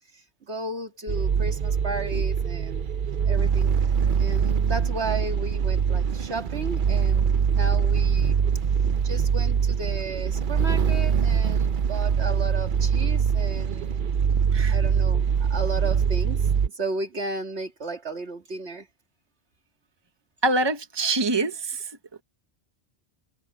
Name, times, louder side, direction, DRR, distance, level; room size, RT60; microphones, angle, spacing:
voice 1, 0.1-2.9 3.2-3.8 4.2-8.4 9.0-14.1 14.7-18.9, right 3 dB, 80° right, 2.4 m, -34 dB
sound 1, 1.1-16.7, right 7 dB, 55° right, 0.8 m, -23 dB
voice 2, 20.4-21.9, right 2 dB, 25° right, 1.4 m, -25 dB
omnidirectional pair, 1.1 m